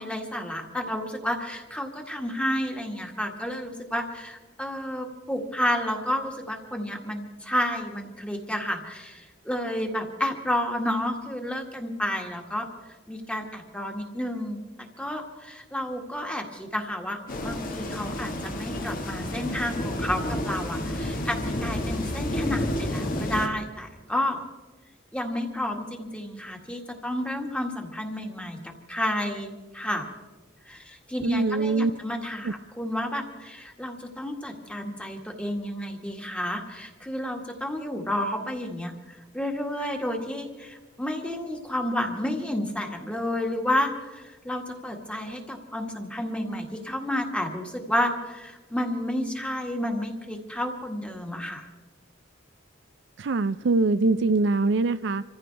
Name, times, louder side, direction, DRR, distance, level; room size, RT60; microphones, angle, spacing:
voice 1, 0.0-12.7 13.1-14.6 15.0-24.4 25.1-30.1 30.7-38.9 39.3-51.7, left 1 dB, 5° left, 2 dB, 1.8 m, -31 dB
sound 1, 17.3-23.5, left 1 dB, 45° left, 1.5 m, -30 dB
voice 2, 31.2-31.9 32.4-32.5 53.2-55.2, right 3 dB, 60° right, 12 dB, 0.5 m, -23 dB
26.5 x 15.0 x 3.4 m, 1.2 s
head